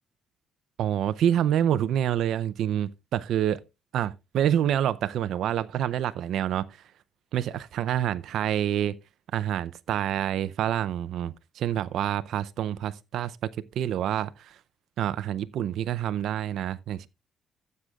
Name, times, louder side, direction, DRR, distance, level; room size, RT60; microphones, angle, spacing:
voice 1, 0.8-3.6 3.9-6.7 7.3-9.0 9.3-13.4 13.8-14.6 15.0-17.1, right 10 dB, 75° right, 0.5 m, -27 dB
15.0 x 7.7 x 2.3 m
cardioid pair, 90°, 0 cm